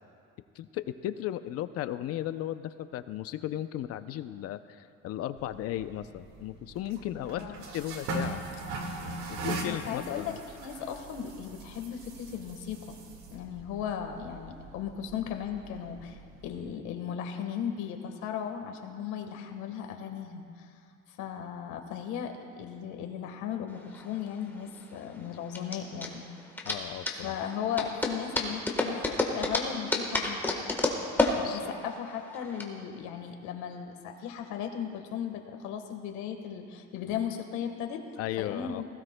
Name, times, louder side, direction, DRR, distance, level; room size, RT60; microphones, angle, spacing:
voice 1, 0.6-7.4 7.7-8.4 9.3-10.4 26.6-27.3 31.3-31.7 38.2-38.8, left 12 dB, 55° left, 12 dB, 0.5 m, -35 dB
sound 1, 5.4-16.6, right 2 dB, 75° right, 1.8 m, -41 dB
voice 2, 9.6-13.0 13.3-20.7 21.1-26.2 27.2-30.4 31.4-38.0 38.4-38.8, left 8 dB, 80° left, 5 dB, 1.4 m, -36 dB
sound 2, 23.7-32.6, left 2 dB, 5° left, 1.3 m, -31 dB
20.0 x 16.0 x 2.2 m, 2.4 s
cardioid pair, 140°, 29 cm